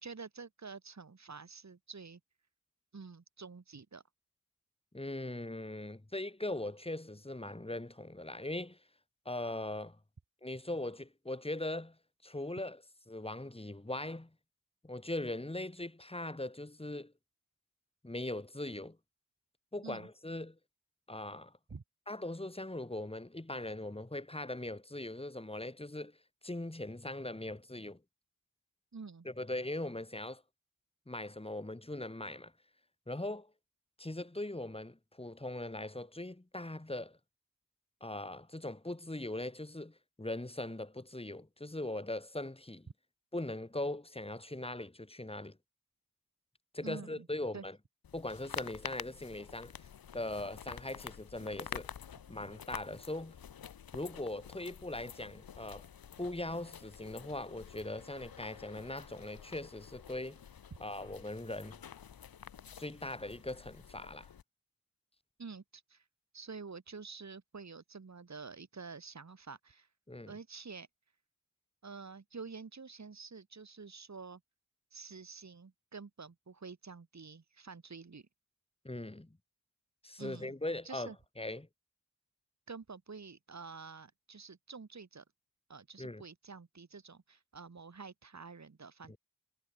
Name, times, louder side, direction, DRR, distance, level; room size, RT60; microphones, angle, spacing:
voice 1, 0.0-2.2 2.9-4.0 19.8-20.1 21.7-21.8 28.9-29.3 46.8-47.3 47.5-47.6 65.4-66.1 66.3-69.9 70.3-70.9 71.8-74.4 74.9-78.3 80.2-80.6 80.8-81.2 82.7-85.2 85.7-89.2, right 4 dB, 50° right, 3.1 m, -48 dB
voice 2, 4.9-8.8 9.2-10.0 10.4-12.0 12.2-12.8 13.1-14.3 14.8-17.1 18.0-19.0 19.7-20.6 21.1-21.5 22.1-26.2 26.4-28.0 29.2-30.4 31.1-32.5 33.1-33.5 34.0-37.2 38.0-42.9 43.3-45.6 46.7-47.8 48.1-49.7 50.1-51.9 52.3-53.4 53.9-55.9 56.2-60.4 60.8-61.8 62.8-64.3 70.1-70.3 78.8-79.4 80.0-81.1 81.4-81.7 86.0-86.2 89.1-89.2, left 1 dB, 15° left, 3.1 m, -40 dB
sound 1, 48.0-64.4, left 8 dB, 85° left, 1.9 m, -49 dB
cardioid pair, 45°, 35 cm